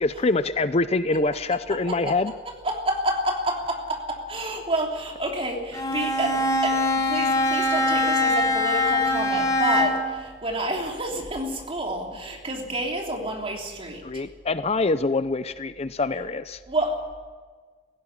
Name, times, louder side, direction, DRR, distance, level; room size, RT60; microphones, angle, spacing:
voice 1, 0.0-2.3 14.0-16.6, left 3 dB, 35° left, 13 dB, 0.6 m, -25 dB
voice 2, 1.7-2.2 2.4-14.2 16.7-17.1, right 1 dB, 35° right, 1 dB, 3.3 m, -29 dB
Bowed string instrument, 5.7-10.2, left 2 dB, 20° left, 2.8 m, -23 dB
16.5 x 16.5 x 9.9 m, 1.5 s
head